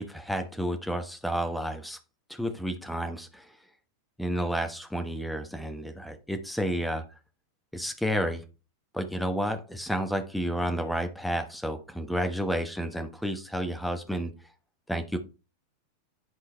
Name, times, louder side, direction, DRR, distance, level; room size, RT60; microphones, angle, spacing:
voice 1, 0.0-2.0 2.3-3.6 4.2-7.0 7.7-8.4 8.9-14.3 14.9-15.2, equal, ahead, 6 dB, 1.0 m, -31 dB
10.5 x 3.8 x 3.2 m, 0.32 s
figure-of-eight pair, 90°, 0 cm